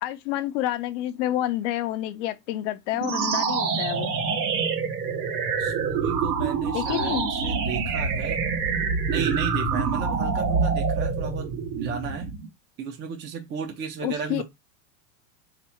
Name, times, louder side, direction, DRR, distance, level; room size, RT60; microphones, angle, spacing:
voice 1, 0.0-4.1 6.7-7.3 14.0-14.4, left 13 dB, 45° left, 0.6 m, -29 dB
sound 1, 2.9-12.5, right 5 dB, 65° right, 1.2 m, -26 dB
voice 2, 5.6-8.4 9.1-12.3 12.8-14.4, right 6 dB, 25° right, 0.6 m, -34 dB
3.3 x 2.9 x 4.3 m
hypercardioid pair, 105°, 50 cm